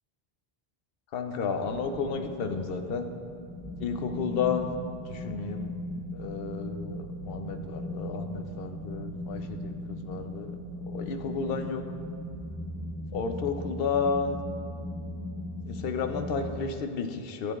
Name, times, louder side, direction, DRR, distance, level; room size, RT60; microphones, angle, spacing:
voice 1, 1.1-3.1 3.8-4.7 5.1-5.7 6.1-10.5 10.9-11.8 13.1-14.4 15.7-17.5, left 5 dB, 65° left, 7 dB, 0.8 m, -32 dB
sound 1, 1.6-16.6, left 1 dB, 5° right, 1.0 m, -38 dB
13.0 x 8.1 x 2.3 m, 2.4 s
omnidirectional pair, 1.1 m